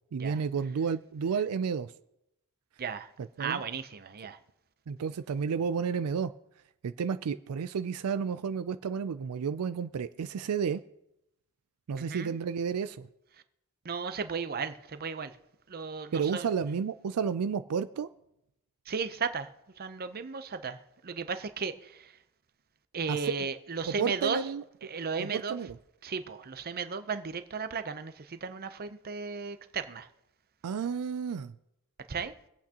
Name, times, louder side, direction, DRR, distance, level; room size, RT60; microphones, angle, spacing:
voice 1, 0.1-1.9 3.4-3.6 4.9-6.3 6.8-10.8 11.9-13.1 16.1-18.1 23.1-23.2 23.9-24.6 25.2-25.7 30.6-31.5, right 6 dB, 85° right, 0.4 m, -31 dB
voice 2, 2.8-3.1 3.4-4.4 12.0-12.4 13.8-15.4 15.7-16.5 18.9-22.2 22.9-24.5 24.8-25.6 26.0-30.1 32.1-32.3, right 5 dB, 45° right, 0.7 m, -35 dB
24.0 x 8.3 x 2.9 m
head